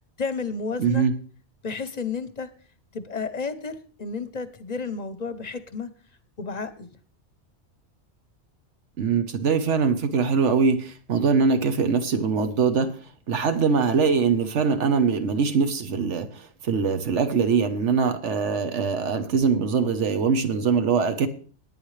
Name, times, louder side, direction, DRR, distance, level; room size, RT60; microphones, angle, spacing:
voice 1, 0.2-1.1 1.6-2.5 2.9-5.9 6.4-6.9, left 4 dB, 40° left, 13 dB, 0.8 m, -32 dB
voice 2, 0.8-1.1 9.0-13.0 13.3-21.3, right 5 dB, 85° right, 8 dB, 1.4 m, -22 dB
18.5 x 9.2 x 3.2 m, 0.42 s
omnidirectional pair, 1.2 m